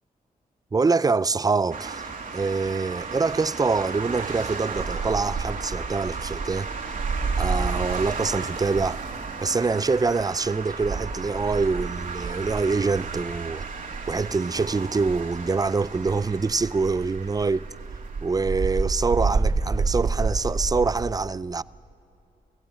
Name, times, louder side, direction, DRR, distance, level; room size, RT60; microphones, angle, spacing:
voice 1, 0.7-2.0 2.3-6.7 7.4-9.0 9.4-13.7 14.1-17.7 18.2-21.6, right 4 dB, 25° right, 0.4 m, -25 dB
sound 1, 1.7-21.1, right 4 dB, 60° right, 2.2 m, -30 dB
29.0 x 16.5 x 7.4 m
cardioid pair, 75°, 16 cm